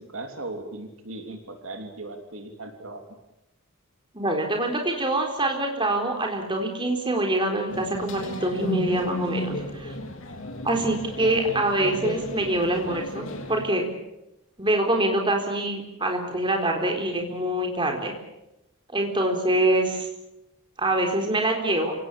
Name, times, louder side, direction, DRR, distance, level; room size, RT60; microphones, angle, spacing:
voice 1, 0.0-3.0, right 2 dB, 65° right, 5 dB, 3.1 m, -38 dB
voice 2, 4.1-9.9 10.6-13.8 14.6-18.1 18.9-20.1 20.8-21.9, right 1 dB, 20° right, 3 dB, 4.0 m, -25 dB
sound 1, 7.7-13.6, left 1 dB, 60° left, 3.6 m, -33 dB
28.0 x 17.5 x 8.8 m, 0.91 s
head